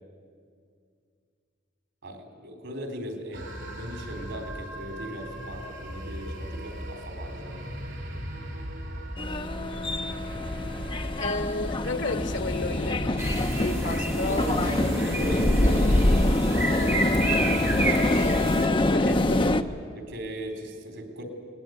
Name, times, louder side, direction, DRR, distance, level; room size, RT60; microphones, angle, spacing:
voice 1, 2.0-7.8 14.2-17.2 19.4-21.2, equal, 90° right, 4 dB, 4.0 m, -37 dB
sound 1, 3.3-18.0, equal, 70° right, 4.4 m, -38 dB
sound 2, 9.2-19.6, left 1 dB, 25° left, 0.7 m, -25 dB
voice 2, 11.2-14.4 18.0-18.4 18.9-19.4, left 3 dB, 75° left, 8 dB, 1.6 m, -33 dB
sound 3, 13.2-18.7, right 2 dB, 15° right, 2.2 m, -31 dB
20.5 x 19.5 x 9.4 m, 2.2 s
head